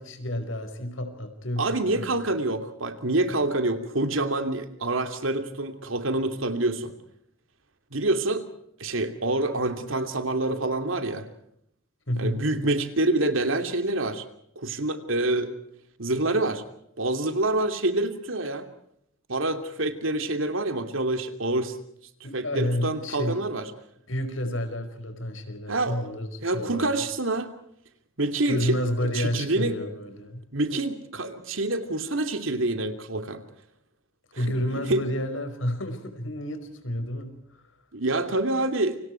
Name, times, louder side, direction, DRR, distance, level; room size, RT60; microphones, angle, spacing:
voice 1, 0.0-2.1 12.1-12.4 22.2-23.4 24.1-26.9 28.4-30.5 34.4-37.3, left 1 dB, 85° left, 8 dB, 5.1 m, -30 dB
voice 2, 1.6-6.9 7.9-8.5 8.8-11.3 12.2-14.2 14.6-15.5 16.0-16.6 17.0-18.7 19.3-21.8 22.3-23.7 25.7-26.0 26.4-27.5 28.2-29.8 30.5-33.4 34.3-35.0 37.9-39.0, right 2 dB, 85° right, 7 dB, 2.8 m, -27 dB
29.5 x 26.0 x 4.6 m, 0.73 s
head